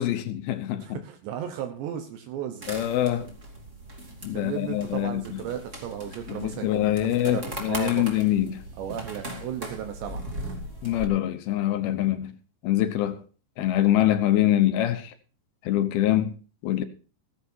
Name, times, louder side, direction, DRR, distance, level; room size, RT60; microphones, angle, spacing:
voice 1, 0.0-1.0 2.7-3.3 4.2-5.4 6.3-8.6 10.8-12.3 12.6-13.2 13.6-15.1 15.6-16.3 16.6-16.8, left 13 dB, 75° left, 2.4 m, -24 dB
voice 2, 0.8-2.7 4.3-6.9 7.2-8.0 8.8-10.2, right 9 dB, 75° right, 3.2 m, -35 dB
sound 1, 2.6-11.1, right 1 dB, 20° right, 2.1 m, -39 dB
16.0 x 15.0 x 2.8 m
omnidirectional pair, 5.2 m